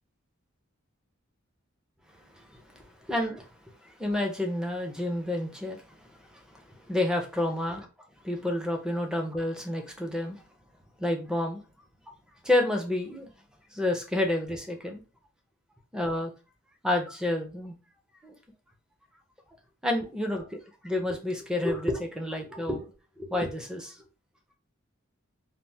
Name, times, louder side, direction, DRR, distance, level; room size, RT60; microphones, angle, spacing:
voice 1, 2.4-3.5 3.8-6.0 6.3-7.9 8.2-10.4 11.0-11.6 12.4-13.3 13.7-15.0 15.9-16.3 16.8-17.8 18.2-18.3 19.8-24.0, left 1 dB, 5° right, 0.5 m, -30 dB
3.2 x 2.0 x 2.6 m
head